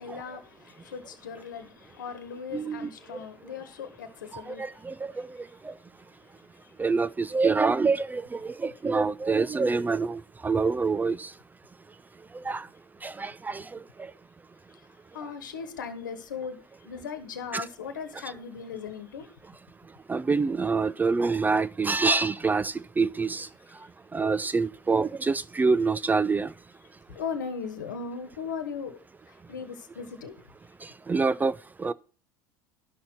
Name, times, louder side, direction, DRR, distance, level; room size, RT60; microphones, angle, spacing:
voice 1, 0.0-5.4 6.2-6.7 15.1-19.3 27.1-29.0 29.3-30.4, left 6 dB, 85° left, 1.3 m, -38 dB
voice 2, 2.5-2.9 4.5-5.1 5.6-5.7 6.8-11.3 12.4-12.7 13.0-13.6 17.5-17.6 20.1-23.5 24.1-26.5 31.1-31.9, right 4 dB, 15° right, 0.4 m, -26 dB
11.5 x 6.3 x 5.7 m
hypercardioid pair, 80°, 10 cm